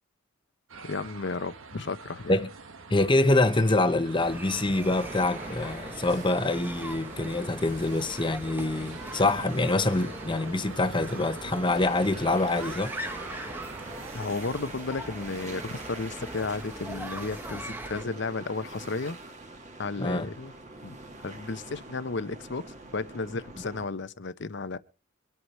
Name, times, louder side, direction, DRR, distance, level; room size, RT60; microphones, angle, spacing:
sound 1, 0.7-14.3, right 4 dB, 85° right, 1.4 m, -45 dB
voice 1, 0.8-2.4 14.1-19.2 19.8-20.5 20.8-21.0 21.2-24.8, left 3 dB, 60° left, 0.8 m, -33 dB
voice 2, 2.9-12.9 20.0-20.3, left 2 dB, 25° left, 0.9 m, -25 dB
sound 2, 4.2-18.0, right 1 dB, 10° right, 0.9 m, -41 dB
sound 3, 4.9-23.9, right 3 dB, 35° right, 1.8 m, -44 dB
24.0 x 8.1 x 4.3 m
head